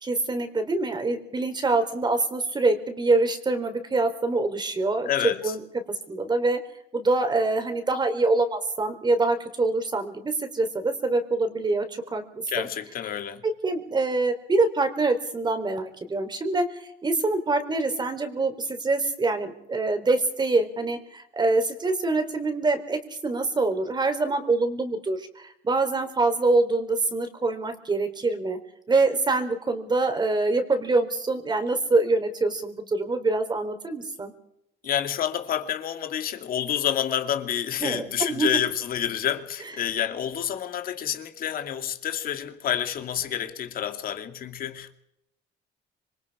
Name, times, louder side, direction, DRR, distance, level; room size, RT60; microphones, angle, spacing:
voice 1, 0.0-5.6 6.1-6.6 6.9-12.7 13.4-28.6 28.9-34.3 37.8-38.6, right 3 dB, 25° right, 4.0 m, -25 dB
voice 2, 5.0-5.5 12.5-13.4 34.8-44.9, left 10 dB, 60° left, 2.3 m, -28 dB
26.5 x 22.5 x 4.9 m
cardioid pair, 110°, 17 cm